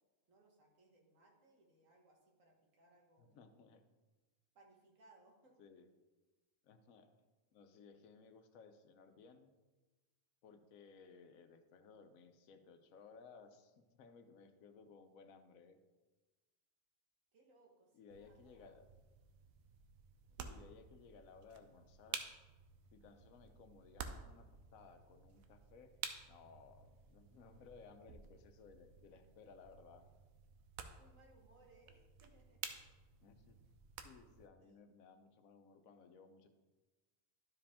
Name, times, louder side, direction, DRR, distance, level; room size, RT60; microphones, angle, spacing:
voice 1, 0.3-3.4 4.6-5.6 17.3-18.8 31.0-32.8 34.6-34.8, right 2 dB, 70° right, 0 dB, 1.7 m, -68 dB
voice 2, 3.2-3.8 5.6-5.9 6.6-7.1 7.5-9.5 10.4-15.8 17.9-18.9 20.4-22.2 22.9-26.0 26.3-30.0 33.2-33.6 34.0-36.5, left 5 dB, 80° left, 8 dB, 1.1 m, -60 dB
sound 1, 18.1-34.5, right 6 dB, 85° right, 1.1 m, -52 dB
11.5 x 4.8 x 3.5 m, 1.2 s
omnidirectional pair, 1.4 m